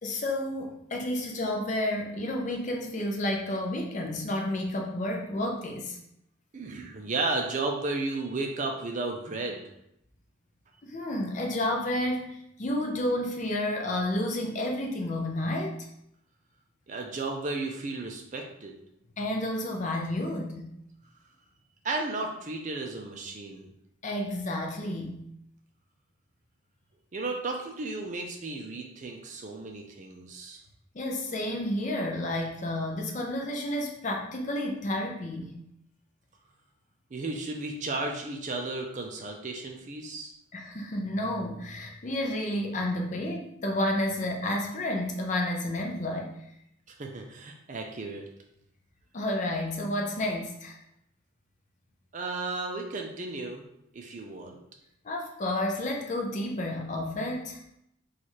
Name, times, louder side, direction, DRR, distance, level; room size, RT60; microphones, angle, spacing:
voice 1, 0.0-6.0 10.8-15.9 19.2-20.7 24.0-25.2 30.9-35.6 40.5-46.3 49.1-50.8 55.0-57.6, left 1 dB, 35° left, 1 dB, 0.5 m, -31 dB
voice 2, 6.5-9.6 16.9-18.7 21.8-23.7 27.1-30.6 37.1-40.3 46.9-48.3 52.1-53.6 53.9-54.6, right 3 dB, 35° right, 2 dB, 0.4 m, -34 dB
3.1 x 2.4 x 4.2 m, 0.77 s
head